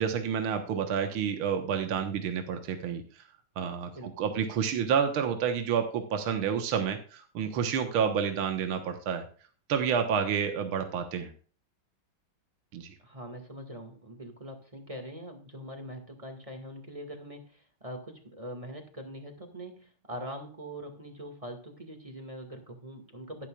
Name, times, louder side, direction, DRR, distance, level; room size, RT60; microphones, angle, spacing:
voice 1, 0.0-3.0 3.6-9.2 9.7-11.3 12.7-12.9, right 7 dB, 75° right, 5 dB, 2.1 m, -29 dB
voice 2, 3.9-4.3 13.0-23.5, equal, 15° right, 4 dB, 1.9 m, -43 dB
12.0 x 11.5 x 2.4 m, 0.40 s
omnidirectional pair, 2.4 m